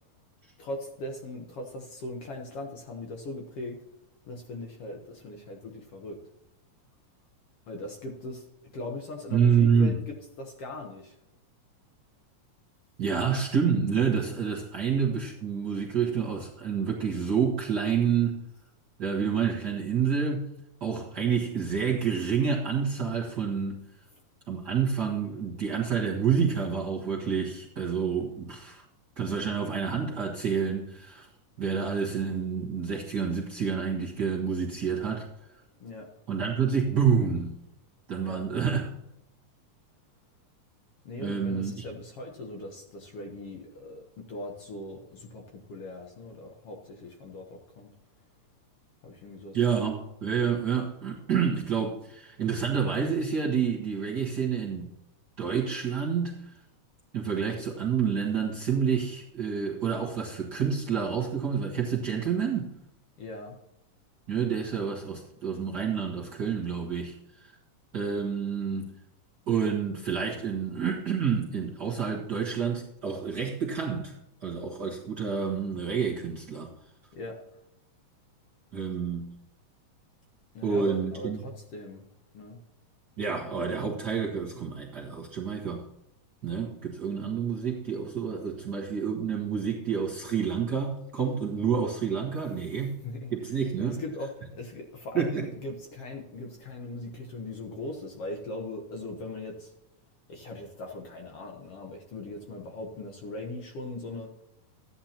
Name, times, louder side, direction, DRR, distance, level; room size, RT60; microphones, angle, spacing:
voice 1, 0.6-3.8 4.3-6.2 7.7-8.5 8.7-11.2 35.8-36.1 38.2-38.4 41.0-47.9 49.0-50.0 63.2-63.6 77.1-77.6 80.5-82.0 82.3-82.6 92.7-99.7 100.3-104.3, left 2 dB, 60° left, 2 dB, 1.8 m, -40 dB
voice 2, 9.3-10.0 13.0-18.5 19.0-20.5 20.8-23.8 24.5-28.8 29.2-31.3 31.6-35.3 36.3-37.6 38.1-38.9 41.2-41.8 49.5-54.9 55.4-56.6 57.1-62.7 64.3-67.5 67.9-68.9 69.5-74.1 74.4-76.7 78.7-79.3 80.6-81.4 83.2-85.9 86.4-93.0 93.3-94.0 95.1-95.5, right 6 dB, 45° right, -4 dB, 1.5 m, -28 dB
14.0 x 10.0 x 2.9 m, 0.84 s
omnidirectional pair, 3.6 m